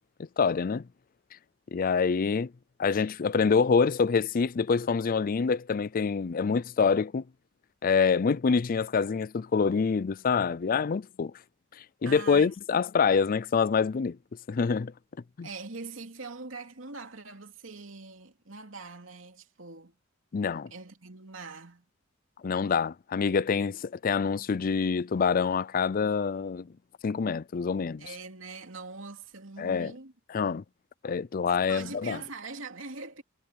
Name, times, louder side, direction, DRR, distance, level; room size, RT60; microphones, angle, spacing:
voice 1, 0.4-0.8 1.7-2.5 2.8-7.2 7.8-11.3 12.0-14.2 14.5-14.9 15.4-15.5 20.3-20.7 22.4-26.7 27.0-28.1 29.6-29.9 30.3-30.6 31.0-32.2, left 5 dB, 45° left, 0.4 m, -26 dB
voice 2, 12.0-12.8 15.4-19.9 20.7-21.8 28.0-30.1 31.7-33.2, right 3 dB, 80° right, 2.9 m, -42 dB
head